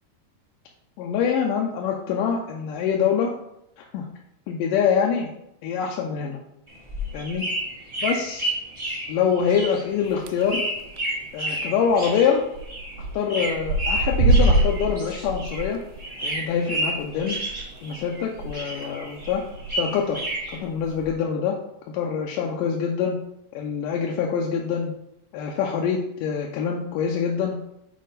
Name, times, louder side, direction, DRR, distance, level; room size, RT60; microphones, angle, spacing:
voice 1, 1.0-3.3 3.9-4.1 4.5-5.3 5.6-6.4 7.1-7.5 8.0-8.5 9.1-10.6 11.3-12.4 13.1-15.8 16.2-17.4 17.8-19.4 19.8-20.2 20.5-21.6 21.9-23.2 23.5-24.9 25.3-27.6, left 7 dB, 80° left, 0 dB, 2.1 m, -25 dB
sound 1, 6.7-15.7 16.0-18.2 18.5-20.6, right 1 dB, 35° right, 0.4 m, -31 dB
sound 2, 10.1-10.5 10.8-11.2 11.4-11.5 11.7-11.8 12.6-13.1 13.4-18.5 18.8-18.9 19.2-19.7 20.4-21.1, right 2 dB, 80° right, 2.1 m, -24 dB
6.5 x 4.5 x 4.0 m, 0.78 s
omnidirectional pair, 4.2 m